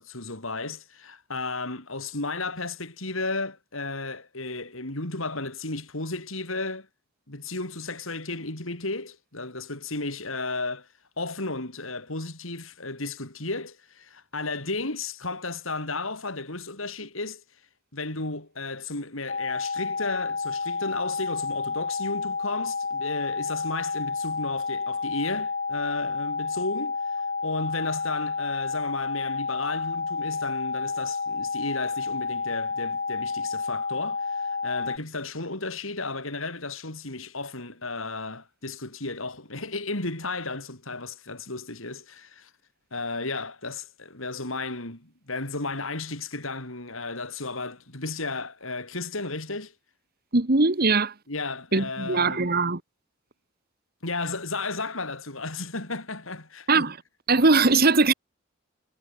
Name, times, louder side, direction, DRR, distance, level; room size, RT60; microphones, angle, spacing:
voice 1, 0.0-6.9 7.3-10.9 11.2-17.4 17.9-42.5 42.9-49.7 51.3-52.5 54.0-56.9, left 3 dB, 75° left, 5.5 m, -34 dB
sound 1, 19.3-35.0, left 4 dB, 45° left, 5.1 m, -30 dB
voice 2, 50.3-51.1 51.7-52.8 56.7-57.0 57.3-58.1, right 3 dB, 45° right, 1.6 m, -20 dB
head